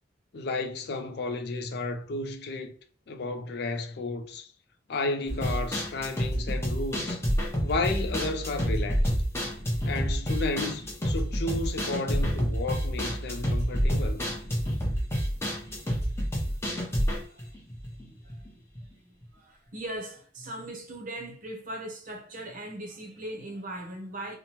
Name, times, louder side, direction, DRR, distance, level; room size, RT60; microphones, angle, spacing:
voice 1, 0.3-2.7 3.1-4.5 4.9-7.2 7.6-9.1 9.9-14.2, left 3 dB, 60° left, 0.4 m, -32 dB
sound 1, 5.3-18.5 18.8-18.9 19.2-19.3, equal, 15° left, 0.7 m, -28 dB
voice 2, 16.9-17.5 18.0-24.4, right 1 dB, 45° right, 0.7 m, -40 dB
2.9 x 2.1 x 2.9 m
head